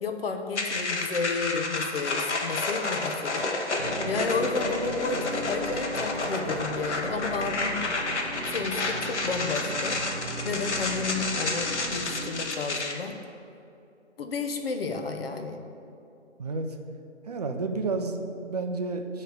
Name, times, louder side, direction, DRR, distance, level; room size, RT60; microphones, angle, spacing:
voice 1, 0.0-3.5 4.1-7.8 8.4-10.0 10.4-13.1 14.2-15.6, left 4 dB, 55° left, 5 dB, 0.8 m, -32 dB
sound 1, 0.5-12.9, left 3 dB, 70° left, 1.1 m, -30 dB
sound 2, 3.8-12.3, right 2 dB, 90° right, 1.2 m, -37 dB
voice 2, 16.4-16.8 17.2-19.2, right 3 dB, 35° right, 5 dB, 0.5 m, -31 dB
9.0 x 3.3 x 6.4 m, 2.6 s
figure-of-eight pair, 150°, 36 cm